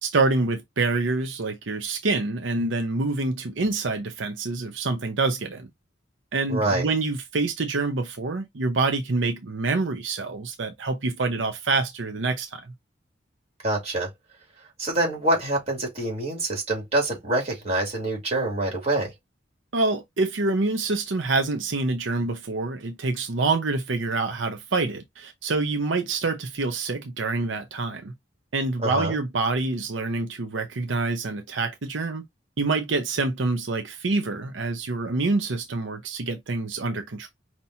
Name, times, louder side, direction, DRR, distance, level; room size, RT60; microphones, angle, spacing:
voice 1, 0.0-5.7 6.3-12.7 19.7-28.1 28.5-32.2 32.6-37.3, right 3 dB, 85° right, 0.7 m, -26 dB
voice 2, 6.5-6.9 13.6-14.1 14.8-19.1 28.8-29.2, right 2 dB, 35° right, 2.6 m, -26 dB
5.5 x 2.9 x 2.7 m
head